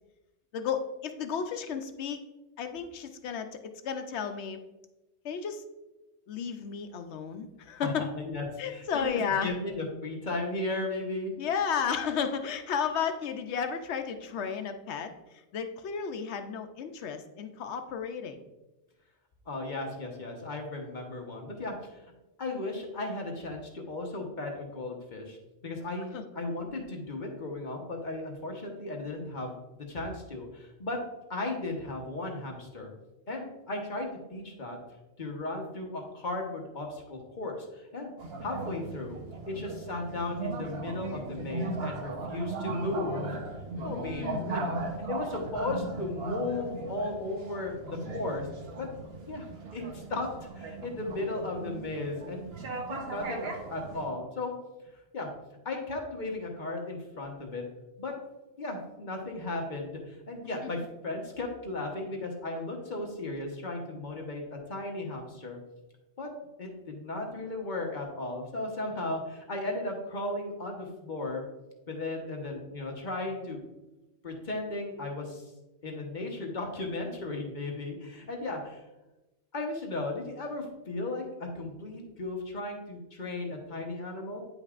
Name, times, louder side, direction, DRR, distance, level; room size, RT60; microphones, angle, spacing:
voice 1, 0.5-2.2 2.6-3.6 3.8-4.6 5.2-5.6 6.3-8.1 8.6-9.5 11.4-18.4 26.1-26.2 43.7-44.6 60.6-60.7, left 7 dB, 75° left, 7 dB, 0.8 m, -33 dB
voice 2, 7.8-9.1 9.4-11.4 19.5-22.0 22.4-25.4 25.6-31.0 31.3-32.9 33.3-34.8 35.2-38.1 38.4-39.2 39.5-43.4 43.8-44.6 45.1-48.5 48.8-48.9 49.2-49.5 49.7-50.3 50.5-52.5 52.8-54.5 55.1-55.3 55.6-57.6 58.0-58.1 58.6-65.6 66.2-66.3 66.6-71.4 71.9-73.6 74.2-75.5 75.8-78.8 79.5-84.4, left 2 dB, 45° left, 1 dB, 1.1 m, -35 dB
sound 1, 38.2-54.1, right 3 dB, 60° right, 1.1 m, -38 dB
9.0 x 5.3 x 2.4 m, 1.0 s
omnidirectional pair, 1.2 m